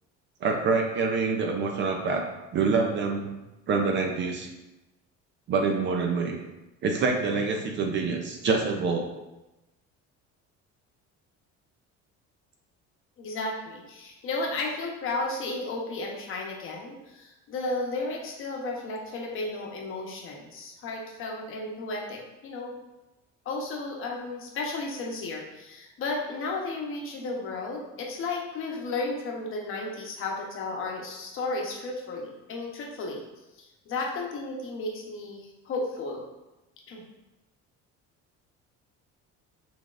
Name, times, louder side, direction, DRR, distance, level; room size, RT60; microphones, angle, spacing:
voice 1, 0.4-2.3 2.5-3.3 3.7-4.5 5.5-6.4 6.8-9.1, right 4 dB, 40° right, 3 dB, 0.5 m, -26 dB
voice 2, 13.2-22.8 23.4-33.2 33.6-36.2 36.9-37.0, left 2 dB, 45° left, -1 dB, 0.9 m, -33 dB
6.0 x 3.4 x 2.4 m, 1.0 s
cardioid pair, 175°, 30 cm